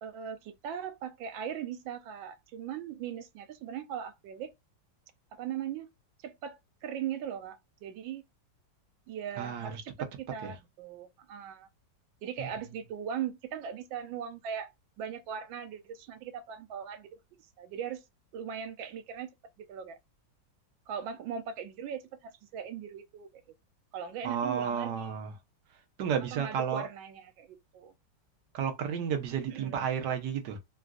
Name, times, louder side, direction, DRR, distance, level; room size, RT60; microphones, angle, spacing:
voice 1, 0.0-4.5 5.3-5.9 6.2-8.2 9.1-11.7 12.2-14.7 15.0-17.1 17.6-18.0 18.3-19.3 19.6-20.0 20.9-23.3 23.9-25.2 26.3-27.9 29.5-29.8, right 8 dB, 85° right, 1.4 m, -39 dB
voice 2, 9.4-9.8 10.4-10.6 12.4-12.5 24.2-25.3 26.0-26.9 28.5-30.6, right 7 dB, 65° right, 1.4 m, -32 dB
3.8 x 2.5 x 2.3 m
omnidirectional pair, 2.0 m